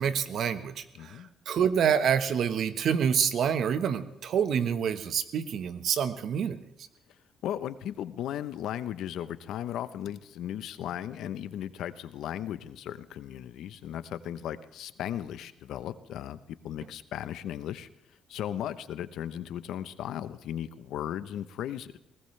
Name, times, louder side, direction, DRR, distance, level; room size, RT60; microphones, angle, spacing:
voice 1, 0.0-6.6, right 7 dB, 65° right, 11 dB, 1.3 m, -27 dB
voice 2, 1.0-1.3 7.4-17.9 18.3-22.0, left 11 dB, 80° left, 13 dB, 0.9 m, -36 dB
20.5 x 19.0 x 3.3 m, 0.88 s
cardioid pair, 90°, 0 cm